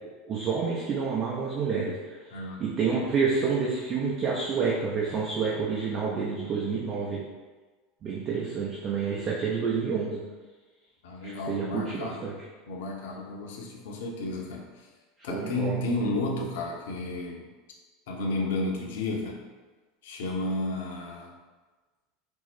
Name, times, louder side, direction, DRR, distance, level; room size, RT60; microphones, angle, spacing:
voice 1, 0.0-2.2 2.6-7.2 8.0-10.2 11.2-12.3 15.3-15.8, right 5 dB, 40° right, -4 dB, 0.7 m, -29 dB
voice 2, 2.3-2.7 11.0-12.2 12.7-14.9 15.2-17.5 18.1-19.4 20.0-21.3, left 2 dB, 70° left, 0 dB, 0.7 m, -32 dB
4.5 x 2.1 x 4.1 m, 1.3 s
hypercardioid pair, 80°, 0 cm